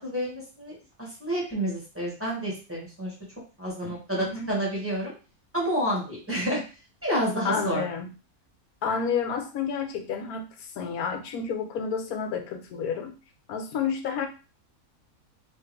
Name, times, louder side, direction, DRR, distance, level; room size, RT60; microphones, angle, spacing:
voice 1, 0.0-3.1 3.6-5.1 5.5-6.6 7.0-7.8, equal, 10° right, -5 dB, 1.5 m, -29 dB
voice 2, 3.8-4.5 7.4-8.1 8.8-13.1 13.5-14.3, left 6 dB, 80° left, 5 dB, 1.1 m, -30 dB
3.5 x 2.9 x 3.3 m, 0.34 s
omnidirectional pair, 1.5 m